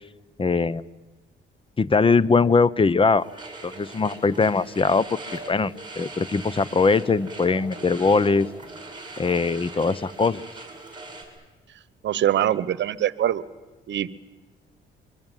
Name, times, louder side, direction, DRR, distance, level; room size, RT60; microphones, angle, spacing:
voice 1, 0.4-0.8 1.8-3.3 3.6-8.5 9.2-10.4, left 4 dB, 25° left, 20 dB, 0.8 m, -21 dB
sound 1, 3.2-11.2, right 2 dB, 25° right, 7.4 m, -41 dB
voice 2, 12.0-13.4 13.9-14.1, right 11 dB, 65° right, 18 dB, 1.1 m, -23 dB
24.0 x 23.5 x 9.1 m, 1.2 s
cardioid pair, 90°, 20 cm